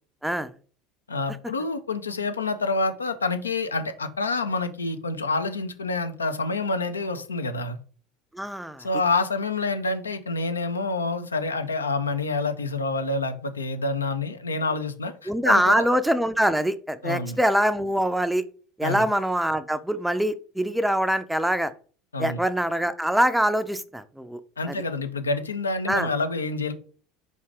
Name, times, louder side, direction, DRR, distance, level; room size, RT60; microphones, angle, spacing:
voice 1, 1.1-7.8 8.8-15.9 17.0-17.4 18.8-19.1 22.1-22.4 24.6-26.7, left 3 dB, 85° left, 9 dB, 0.5 m, -27 dB
voice 2, 8.3-8.9 15.3-18.4 18.8-21.7 22.2-24.4 24.7-24.8 25.9-26.1, equal, 5° right, 12 dB, 0.4 m, -24 dB
4.7 x 2.6 x 3.3 m, 0.41 s
figure-of-eight pair, 70°, 0 cm